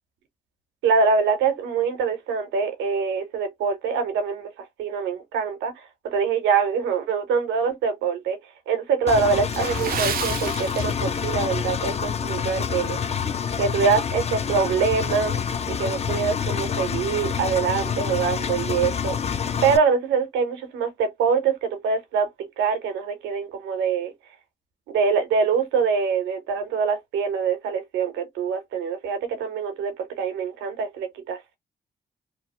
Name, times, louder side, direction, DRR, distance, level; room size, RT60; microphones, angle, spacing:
voice 1, 0.8-4.5 4.8-8.4 8.7-13.0 13.6-15.4 15.7-19.2 19.6-24.1 24.9-31.6, right 5 dB, 90° right, 0.7 m, -24 dB
Engine, 9.1-19.8, left 7 dB, 35° left, 0.4 m, -27 dB
Water / Splash splatter, 9.5-11.4 11.7-11.9 12.5-12.7 13.2-13.3, right 9 dB, 55° right, 0.4 m, -31 dB
2.8 x 2.0 x 2.8 m
supercardioid pair, 50°, 18 cm